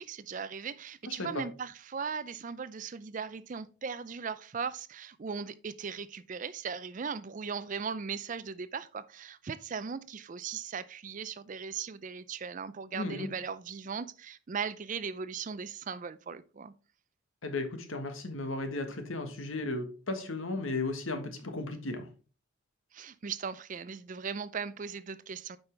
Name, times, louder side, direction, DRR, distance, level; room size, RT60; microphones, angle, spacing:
voice 1, 0.0-16.7 22.9-25.6, right 6 dB, 40° right, 0.4 m, -38 dB
voice 2, 1.1-1.4 12.9-13.3 17.4-22.1, left 2 dB, 75° left, 1.4 m, -35 dB
8.8 x 5.5 x 3.3 m
head